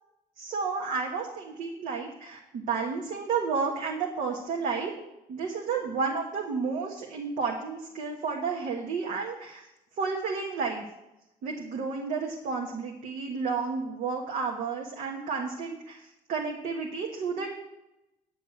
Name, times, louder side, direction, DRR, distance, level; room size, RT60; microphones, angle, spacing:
voice 1, 0.4-4.9 5.3-9.6 10.0-10.8 11.4-16.0 16.3-17.5, right 5 dB, 55° right, 0 dB, 1.4 m, -31 dB
9.6 x 8.7 x 6.5 m, 0.93 s
cardioid pair, 175°, 16 cm